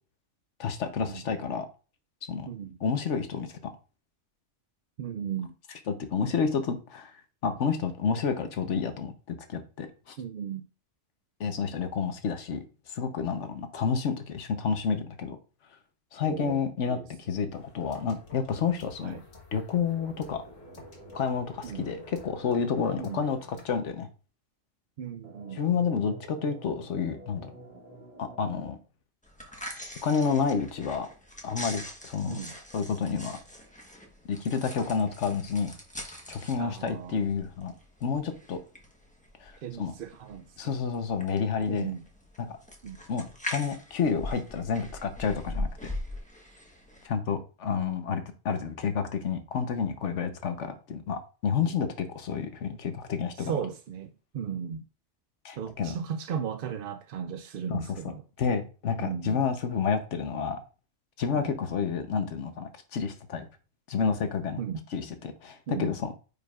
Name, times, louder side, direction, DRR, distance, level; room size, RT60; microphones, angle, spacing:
voice 1, 0.6-1.7 2.3-2.5 2.8-3.7 5.9-7.1 7.4-10.2 11.4-15.4 16.1-17.0 17.3-19.2 19.5-20.4 21.1-24.1 25.6-27.5 28.2-28.8 30.0-31.1 31.4-32.4 32.7-33.4 34.3-35.7 36.3-37.7 38.0-38.6 39.4-39.5 39.8-39.9 40.6-41.9 42.5-42.6 43.1-45.9 47.0-53.5 55.4-55.9 57.7-57.8 58.4-60.6 61.2-63.5 63.9-64.6 64.9-66.1, left 6 dB, 70° left, 1.3 m, -30 dB
voice 2, 2.4-2.8 5.0-5.5 10.2-10.7 16.2-16.6 16.9-17.4 19.0-19.2 21.6-21.9 23.0-23.2 25.0-25.6 32.3-32.5 36.6-37.3 39.6-40.8 41.7-42.0 42.8-43.0 53.4-54.8 55.6-58.2 59.0-59.4 61.3-61.5 64.6-64.8 65.7-65.9, right 8 dB, 60° right, 0.6 m, -36 dB
sound 1, 17.5-23.7, left 3 dB, 90° left, 1.9 m, -53 dB
sound 2, 19.9-22.9 25.2-28.6, right 1 dB, 35° right, 2.2 m, -49 dB
sound 3, 29.2-47.1, left 1 dB, 5° left, 1.1 m, -42 dB
9.1 x 5.1 x 2.4 m
omnidirectional pair, 1.3 m